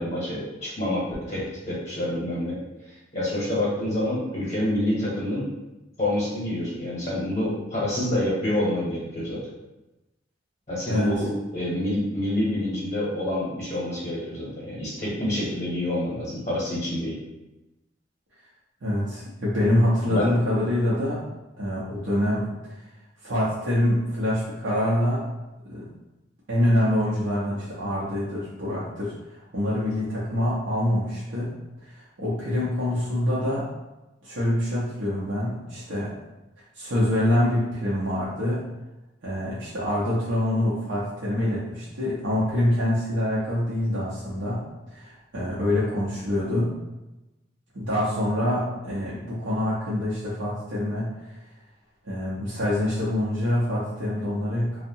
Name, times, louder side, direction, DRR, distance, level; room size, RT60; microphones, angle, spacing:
voice 1, 0.0-2.6 3.1-5.5 6.0-9.4 10.7-17.2 20.1-20.3, left 1 dB, 40° left, -7 dB, 0.8 m, -27 dB
voice 2, 18.8-21.2 21.6-22.9 23.2-25.3 25.6-25.9 26.5-31.5 31.8-33.6 34.2-36.1 36.7-38.6 39.2-44.6 44.9-46.7 47.7-51.3 52.0-54.8, left 1 dB, 85° right, -9 dB, 0.6 m, -25 dB
2.7 x 2.1 x 2.6 m, 1.0 s
head